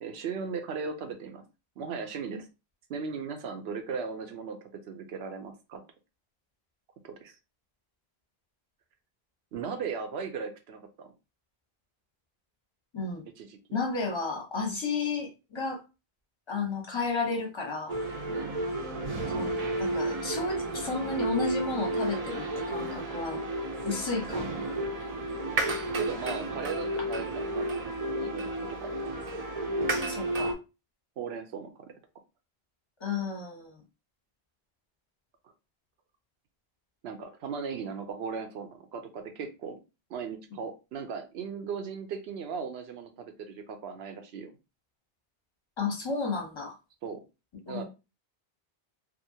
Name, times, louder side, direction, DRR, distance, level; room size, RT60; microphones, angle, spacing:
voice 1, 0.0-1.4 1.8-2.5 2.9-5.8 7.0-7.4 9.5-11.1 13.4-13.6 18.3-18.6 25.9-27.8 28.2-28.9 31.2-31.9 37.0-39.8 40.1-44.5 47.0-47.2 47.7-47.8, right 5 dB, 75° right, 6 dB, 0.9 m, -37 dB
voice 2, 12.9-13.2 13.7-15.8 16.5-18.0 19.3-23.4 23.8-24.5 30.1-30.6 33.0-33.8 45.8-46.8 47.7-47.8, left 4 dB, 30° left, 2 dB, 0.8 m, -32 dB
sound 1, 17.9-30.5, right 1 dB, 45° right, 0.6 m, -32 dB
2.7 x 2.5 x 2.7 m, 0.28 s
omnidirectional pair, 1.1 m